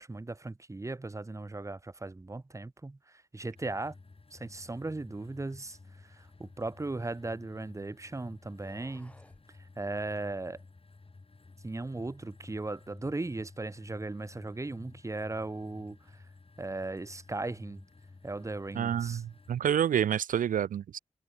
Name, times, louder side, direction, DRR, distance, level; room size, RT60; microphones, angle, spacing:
voice 1, 0.0-4.0 4.3-5.8 6.0-9.1 9.8-10.6 11.6-16.2 16.6-17.8 18.2-19.2, right 2 dB, 20° right, 0.8 m, -37 dB
sound 1, 3.5-19.6, left 3 dB, 45° left, 4.8 m, -55 dB
sound 2, 6.3-7.7 8.4-9.5, left 1 dB, 10° left, 4.8 m, -61 dB
voice 2, 18.7-21.0, right 9 dB, 80° right, 0.4 m, -28 dB
cardioid pair, 50°, 14 cm